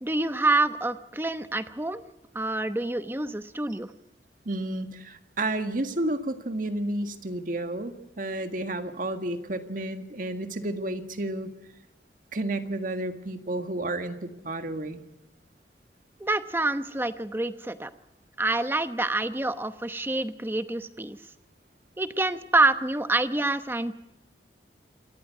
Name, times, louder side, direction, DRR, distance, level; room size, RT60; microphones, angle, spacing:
voice 1, 0.0-2.0 2.3-3.9 16.2-17.9 18.4-21.2 22.0-23.9, right 2 dB, 10° right, 11 dB, 0.9 m, -27 dB
voice 2, 4.4-11.5 12.3-15.0, right 1 dB, 50° right, 8 dB, 1.7 m, -31 dB
27.5 x 14.0 x 8.2 m, 0.92 s
head